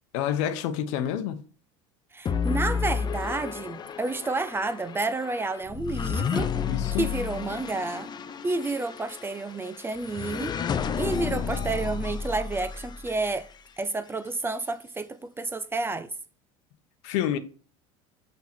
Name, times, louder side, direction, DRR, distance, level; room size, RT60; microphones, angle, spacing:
voice 1, 0.1-1.4 6.6-7.1 17.0-17.4, left 10 dB, 75° left, 0.9 m, -28 dB
voice 2, 2.1-6.5 6.9-8.1 8.4-10.6 11.0-13.5 13.8-16.1, right 3 dB, 15° right, 0.5 m, -30 dB
sound 1, 2.3-13.6, left 6 dB, 25° left, 0.6 m, -31 dB
6.0 x 5.8 x 4.4 m
supercardioid pair, 115°, 16 cm